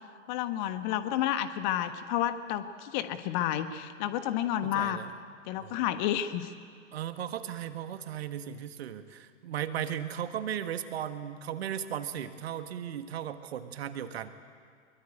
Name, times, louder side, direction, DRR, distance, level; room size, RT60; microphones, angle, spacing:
voice 1, 0.3-5.0 5.5-6.5, left 11 dB, 35° left, 10 dB, 1.4 m, -30 dB
voice 2, 4.6-5.1 5.6-5.8 6.9-14.3, right 9 dB, 55° right, 10 dB, 1.7 m, -36 dB
23.5 x 22.5 x 8.9 m, 2.1 s
figure-of-eight pair, 105°, 37 cm